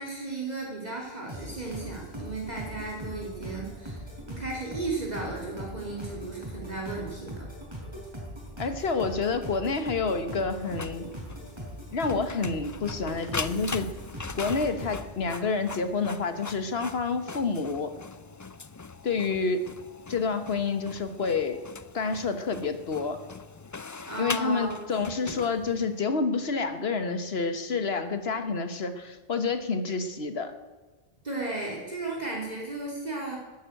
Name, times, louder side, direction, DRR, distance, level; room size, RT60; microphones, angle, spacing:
voice 1, 0.0-7.5 24.1-24.8 25.2-25.4 31.2-33.4, right 3 dB, 40° right, -2 dB, 2.8 m, -35 dB
sound 1, 1.3-15.0, equal, 25° right, 4.5 m, -40 dB
voice 2, 8.6-11.1 11.9-13.9 14.3-17.9 19.0-19.7 20.1-21.6 21.9-23.2 24.2-30.5, left 4 dB, 75° left, 9 dB, 1.5 m, -28 dB
Printer, 10.6-26.0, left 4 dB, 30° left, 0.3 m, -41 dB
13.0 x 10.0 x 9.1 m, 1.3 s
omnidirectional pair, 1.0 m